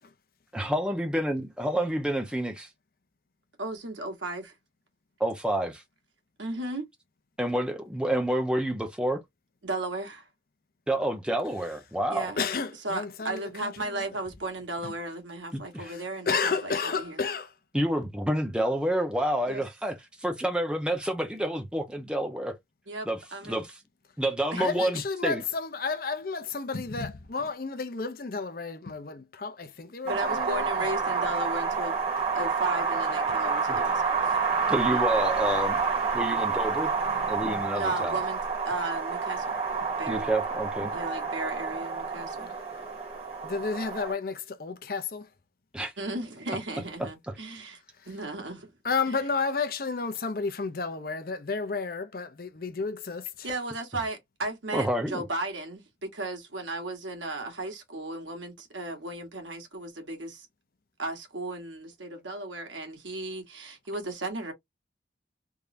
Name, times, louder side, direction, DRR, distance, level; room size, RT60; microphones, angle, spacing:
voice 1, 0.5-2.7 5.2-5.8 7.4-9.2 10.9-12.3 15.5-15.9 17.7-22.5 23.0-23.2 23.5-23.6 24.2-25.4 33.7-33.8 34.7-35.8 36.1-36.9 37.3-38.2 40.1-40.9 45.7-45.9 54.7-55.2, right 1 dB, 5° right, 0.8 m, -28 dB
voice 2, 3.6-4.5 6.4-6.9 9.6-10.3 12.1-12.4 12.8-17.2 19.5-19.6 22.9-23.6 24.5-24.6 30.0-32.0 32.3-34.4 37.7-38.4 38.6-39.6 39.9-40.3 40.9-42.5 46.0-47.8 48.0-48.7 49.1-49.2 53.4-60.5 61.0-64.5, right 2 dB, 90° right, 1.6 m, -35 dB
voice 3, 12.4-14.1 14.8-14.9 15.8-17.5 24.6-30.9 37.1-37.6 43.4-45.3 48.8-53.5, left 4 dB, 50° left, 0.6 m, -32 dB
Wind, 30.1-44.1, right 5 dB, 35° right, 2.1 m, -29 dB
3.6 x 3.2 x 2.6 m
head